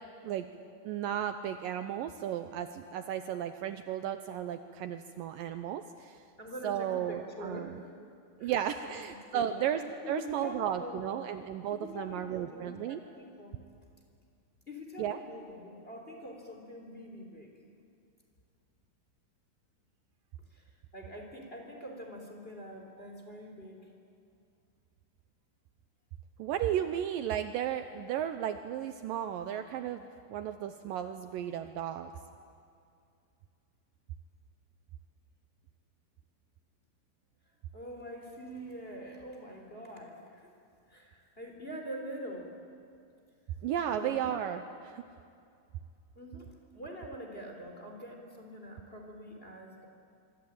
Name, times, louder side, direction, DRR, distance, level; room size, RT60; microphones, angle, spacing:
voice 1, 0.8-6.2 6.6-7.8 8.4-13.0 15.0-15.2 26.4-32.1 43.6-45.0, right 10 dB, 75° right, 9 dB, 2.2 m, -34 dB
voice 2, 6.4-8.1 8.4-8.5 9.0-9.7 10.0-11.2 11.7-13.5 14.7-17.5 20.5-20.6 20.9-23.9 37.7-40.5 40.9-42.5 43.5-43.6 43.9-44.4 46.1-46.5 46.7-49.9, equal, 15° left, 2 dB, 3.2 m, -44 dB
25.5 x 24.5 x 8.7 m, 2.4 s
omnidirectional pair, 4.4 m